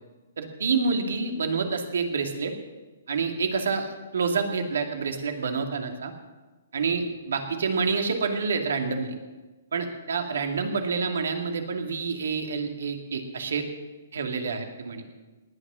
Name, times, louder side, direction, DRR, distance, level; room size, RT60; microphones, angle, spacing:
voice 1, 0.4-2.5 3.1-6.1 6.7-9.1 9.7-13.7 14.1-15.0, right 5 dB, 80° right, 4 dB, 2.4 m, -28 dB
18.5 x 10.0 x 6.3 m, 1.2 s
hypercardioid pair, 150°, 0 cm